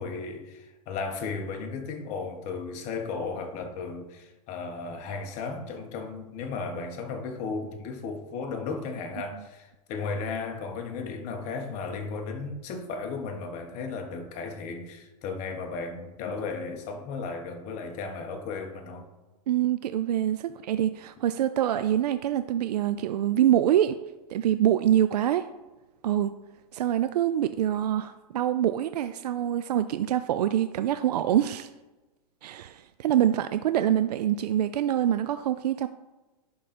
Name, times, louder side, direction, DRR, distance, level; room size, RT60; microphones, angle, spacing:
voice 1, 0.0-19.1, left 4 dB, 35° left, 1.2 m, -35 dB
voice 2, 19.5-24.0 24.3-25.4 26.0-26.3 26.7-31.7 32.4-35.9, right 11 dB, 90° right, 0.4 m, -25 dB
11.0 x 3.8 x 4.2 m
hypercardioid pair, 140°, 20 cm